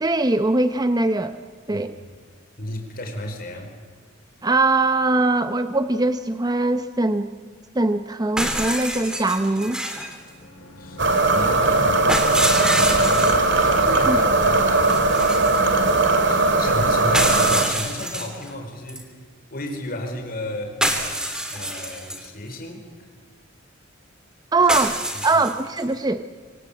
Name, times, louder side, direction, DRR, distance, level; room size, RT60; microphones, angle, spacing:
voice 1, 0.0-1.3 1.7-1.9 4.4-7.3 7.7-9.8 14.0-14.2 24.5-25.0 25.2-26.2, right 2 dB, 20° right, 10 dB, 0.7 m, -21 dB
voice 2, 1.7-2.1 2.6-3.7 10.8-13.3 13.8-15.7 16.2-19.2 19.5-23.1 24.6-24.7 25.1-25.4, left 1 dB, 45° left, 3 dB, 4.7 m, -34 dB
sound 1, 8.4-10.2 12.1-13.5 14.8-16.0 17.1-18.5 18.9-19.0 20.8-22.3 24.7-25.8, right 1 dB, 5° right, 2.9 m, -26 dB
sound 2, 10.1-15.6, left 1 dB, 65° left, 6.0 m, -38 dB
sound 3, 11.0-17.6, right 2 dB, 60° right, 2.7 m, -19 dB
26.5 x 25.0 x 8.6 m, 1.5 s
head